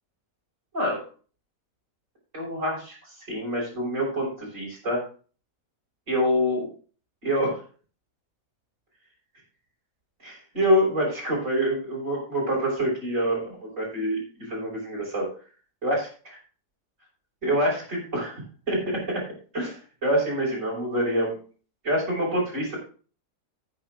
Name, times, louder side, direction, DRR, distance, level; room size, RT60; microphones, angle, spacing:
voice 1, 2.3-5.0 6.1-6.7 7.2-7.6 10.2-15.3 15.8-16.1 17.4-18.4 18.7-19.2 19.5-21.4 21.8-22.8, equal, 50° right, -7 dB, 5.8 m, -26 dB
16.0 x 9.6 x 2.5 m, 0.39 s
omnidirectional pair, 1.7 m